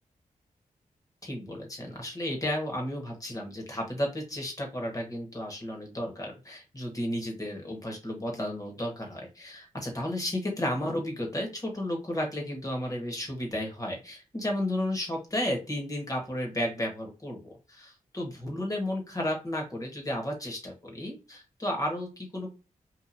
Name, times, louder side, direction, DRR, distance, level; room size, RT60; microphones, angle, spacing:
voice 1, 1.2-22.5, left 1 dB, 25° left, 0 dB, 1.2 m, -33 dB
2.9 x 2.5 x 2.5 m, 0.31 s
cardioid pair, 55°, 14 cm